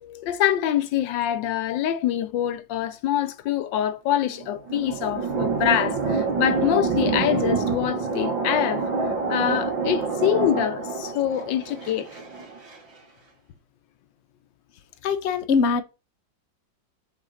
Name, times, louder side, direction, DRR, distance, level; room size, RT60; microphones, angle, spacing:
voice 1, 0.0-8.8 9.3-12.1, left 11 dB, 80° left, 1.4 m, -25 dB
sound 1, 4.2-12.8, right 4 dB, 85° right, 2.6 m, -27 dB
voice 2, 15.0-15.8, left 5 dB, 45° left, 0.9 m, -22 dB
5.5 x 4.7 x 6.3 m
omnidirectional pair, 2.0 m